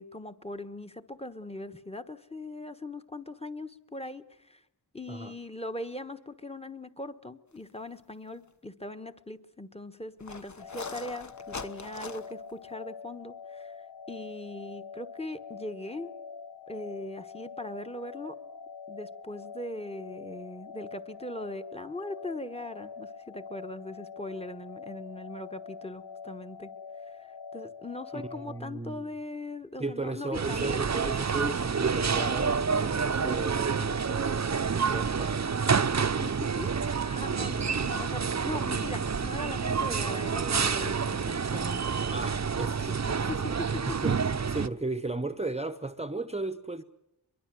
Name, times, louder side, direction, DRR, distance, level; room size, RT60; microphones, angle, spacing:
voice 1, 0.0-4.6 4.9-16.1 16.7-18.3 18.9-26.7 27.1-30.7 36.2-36.7 37.0-41.8 43.0-43.7, left 2 dB, 15° left, 1.3 m, -40 dB
sound 1, 7.9-8.1 8.5-8.6 10.2-12.5, left 4 dB, 45° left, 1.3 m, -41 dB
sound 2, 10.6-28.6, left 5 dB, 85° left, 1.7 m, -45 dB
voice 2, 28.1-29.1 29.8-35.9 37.4-37.5 42.1-43.3 43.9-44.2 44.5-46.8, right 2 dB, 15° right, 0.9 m, -35 dB
sound 3, 30.3-44.7, right 6 dB, 45° right, 0.8 m, -28 dB
23.0 x 23.0 x 7.8 m
wide cardioid pair, 90°, 40 cm